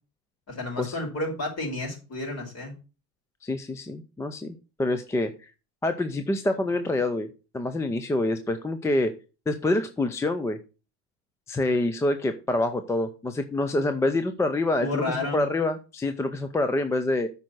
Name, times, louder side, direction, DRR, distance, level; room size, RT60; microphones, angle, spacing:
voice 1, 0.5-2.7 14.8-15.4, left 2 dB, 30° left, 1 dB, 5.2 m, -31 dB
voice 2, 3.4-5.5 5.8-7.3 7.5-9.1 9.5-10.6 11.5-17.3, left 2 dB, 5° left, 9 dB, 0.4 m, -26 dB
8.5 x 5.4 x 6.1 m, 0.32 s
supercardioid pair, 120°, 47 cm